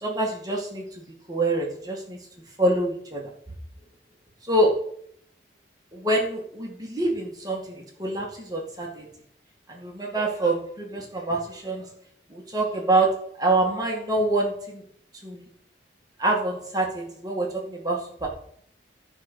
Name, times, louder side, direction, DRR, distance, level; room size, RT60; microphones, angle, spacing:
voice 1, 0.0-2.2 2.6-3.2 4.5-4.8 5.9-9.1 9.7-11.8 12.3-13.1 13.4-14.8 15.2-15.5 16.2-18.3, right 2 dB, 20° right, -1 dB, 2.1 m, -26 dB
14.0 x 5.2 x 6.3 m, 0.64 s
head